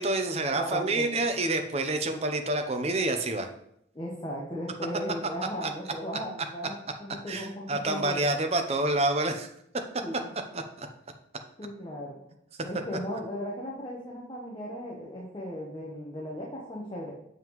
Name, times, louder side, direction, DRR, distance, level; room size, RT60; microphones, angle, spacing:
voice 1, 0.0-3.5 5.6-5.7 7.3-9.5 10.5-10.9, right 2 dB, 35° right, 6 dB, 0.7 m, -28 dB
voice 2, 0.5-1.2 3.9-8.3 10.0-10.3 11.6-12.2 12.6-17.1, equal, 25° left, -3 dB, 1.0 m, -37 dB
7.5 x 5.5 x 3.1 m, 0.74 s
head